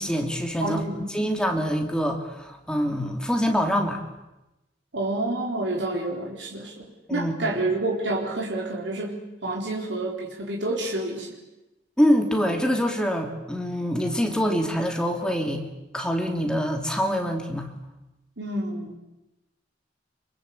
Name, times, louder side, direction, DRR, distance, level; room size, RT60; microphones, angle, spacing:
voice 1, 0.0-4.0 7.1-7.3 12.0-15.6 15.9-17.7, equal, 5° left, 3 dB, 2.9 m, -25 dB
voice 2, 0.6-1.1 4.9-6.8 7.1-11.4 18.4-19.0, right 2 dB, 80° right, -1 dB, 4.0 m, -29 dB
26.0 x 23.5 x 8.5 m, 0.97 s
head